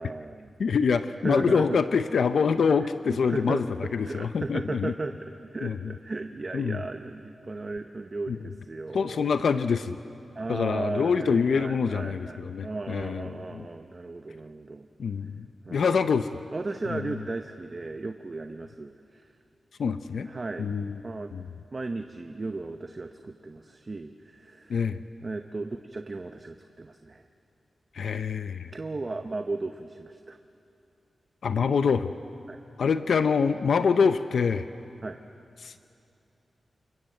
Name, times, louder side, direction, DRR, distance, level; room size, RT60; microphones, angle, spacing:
voice 1, 0.0-0.5 1.2-1.8 2.8-3.6 4.0-9.3 10.4-14.9 15.7-16.1 16.5-19.3 20.3-20.7 21.0-21.3 21.7-24.9 25.2-27.2 28.7-30.4 32.5-32.6 35.0-35.2, right 3 dB, 30° right, 7 dB, 0.8 m, -36 dB
voice 2, 0.6-4.9 5.6-5.9 6.5-6.8 8.3-8.4 8.9-10.0 10.5-13.3 13.5-13.7 15.0-16.4 16.9-17.2 19.8-20.3 20.6-21.0 21.3-21.4 24.7-25.0 27.9-28.7 31.4-32.1 32.8-34.6 35.6-35.7, left 5 dB, 70° left, 10 dB, 0.7 m, -25 dB
28.5 x 25.0 x 7.8 m, 2.7 s
wide cardioid pair, 180°, 0 cm